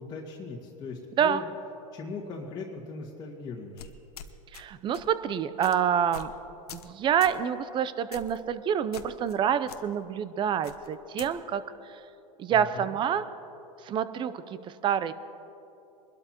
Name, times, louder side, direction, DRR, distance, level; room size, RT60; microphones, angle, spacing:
voice 1, 0.0-1.5 1.9-3.9 12.5-12.9, left 4 dB, 20° left, -6 dB, 1.8 m, -39 dB
sound 1, 3.8-4.6 4.9-5.1 5.6-5.8 6.1-6.4 6.7-6.9 7.2-7.4 8.1-8.4 8.9-9.4 9.7-9.8 10.6-11.3, left 7 dB, 90° left, 0.9 m, -44 dB
voice 2, 4.5-6.3 6.7-12.0 12.4-13.2 13.8-15.1, right 8 dB, 25° right, 14 dB, 0.6 m, -27 dB
23.5 x 12.5 x 3.0 m, 3.0 s
hypercardioid pair, 120°, 19 cm